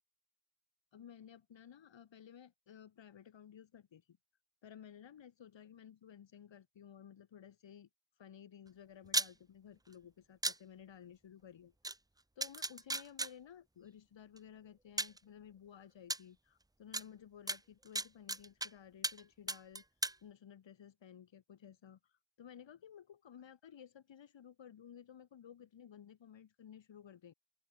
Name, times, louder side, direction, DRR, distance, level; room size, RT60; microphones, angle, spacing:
voice 1, 0.9-4.2 4.6-7.9 8.2-11.7 12.4-19.8 20.2-27.3, left 9 dB, 85° left, 1.8 m, -55 dB
sound 1, 9.1-9.3 10.4-10.6 11.8-11.9 12.4-13.3 14.4-14.5 15.0-15.2 16.1-16.2 16.9-17.0 17.5-18.7 19.0-19.2 19.5-20.2, right 2 dB, 10° right, 0.5 m, -35 dB
open air
cardioid pair, 60°, 44 cm